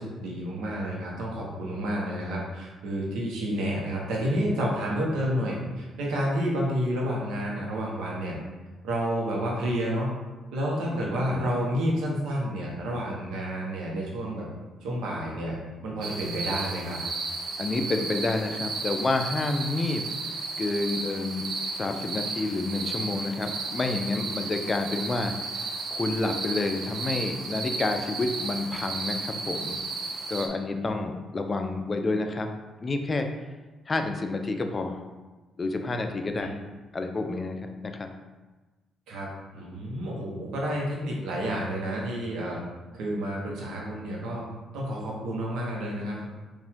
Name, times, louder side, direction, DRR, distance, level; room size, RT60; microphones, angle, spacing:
voice 1, 0.0-8.4 8.8-10.1 10.5-14.5 14.8-15.6 15.8-17.0 36.4-36.5 39.1-42.6 42.9-44.4 44.7-46.2, equal, 85° right, -3 dB, 1.1 m, -30 dB
voice 2, 11.0-11.5 17.6-20.0 20.6-25.3 25.6-29.8 30.3-32.5 32.8-33.3 33.9-35.0 35.6-36.6 36.9-38.1, left 3 dB, 30° left, 5 dB, 0.4 m, -29 dB
sound 1, 16.0-30.5, right 3 dB, 70° right, 0.6 m, -34 dB
4.7 x 2.6 x 3.6 m, 1.2 s
cardioid pair, 90°, 0 cm